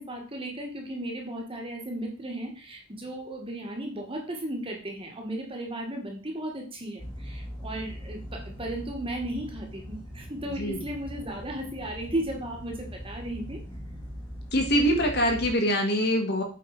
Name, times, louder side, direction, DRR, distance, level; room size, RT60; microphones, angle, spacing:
voice 1, 0.0-13.6, right 1 dB, 25° right, 2 dB, 2.1 m, -35 dB
sound 1, 7.0-15.6, equal, 20° left, 3.2 m, -40 dB
voice 2, 10.5-10.8 14.5-16.4, equal, 50° left, 3 dB, 2.4 m, -24 dB
8.3 x 6.0 x 5.1 m, 0.38 s
head